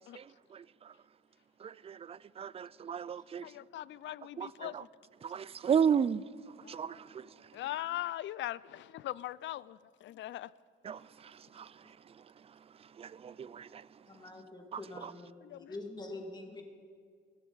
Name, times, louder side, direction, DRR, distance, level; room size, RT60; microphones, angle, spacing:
voice 1, 1.6-3.5 4.4-4.8 5.2-6.2 6.7-7.3 10.8-11.0 11.6-11.7 13.0-13.8 14.7-15.1, right 7 dB, 30° right, 0.4 m, -33 dB
voice 2, 3.4-4.8 6.6-6.8 7.5-10.5 15.4-15.7, left 14 dB, 70° left, 0.5 m, -40 dB
voice 3, 14.1-16.6, left 2 dB, 20° left, 2.2 m, -45 dB
22.0 x 15.5 x 4.0 m
cardioid pair, 90°, 20 cm